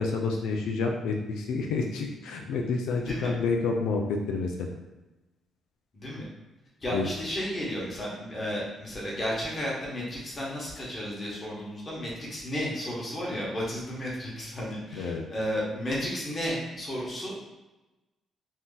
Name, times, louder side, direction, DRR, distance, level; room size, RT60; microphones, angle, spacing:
voice 1, 0.0-4.7 6.9-7.1 14.9-15.2, left 4 dB, 85° left, 1 dB, 0.4 m, -29 dB
voice 2, 2.9-3.3 5.9-6.2 6.8-17.4, equal, 30° left, -5 dB, 1.2 m, -33 dB
2.7 x 2.4 x 3.8 m, 1.1 s
cardioid pair, 90°, 0 cm